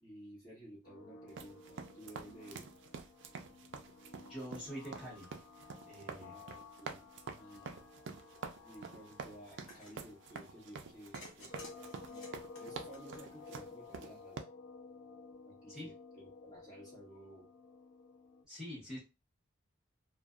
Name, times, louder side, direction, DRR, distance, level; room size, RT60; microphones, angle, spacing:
voice 1, 0.0-2.7 6.2-7.1 7.3-7.7 8.6-11.5 12.1-12.2 12.6-14.5 15.4-17.5, right 1 dB, 20° left, -7 dB, 1.3 m, -54 dB
sound 1, 0.8-18.4, left 4 dB, 55° left, 0.4 m, -54 dB
sound 2, 1.3-14.4, right 5 dB, 60° right, 0.4 m, -47 dB
voice 2, 4.3-5.3 5.9-6.4 15.7-15.9 18.5-19.0, equal, 5° right, -9 dB, 1.1 m, -45 dB
sound 3, 9.5-10.0 11.1-13.6, left 2 dB, 85° left, 1.0 m, -55 dB
2.5 x 2.2 x 2.4 m, 0.27 s
head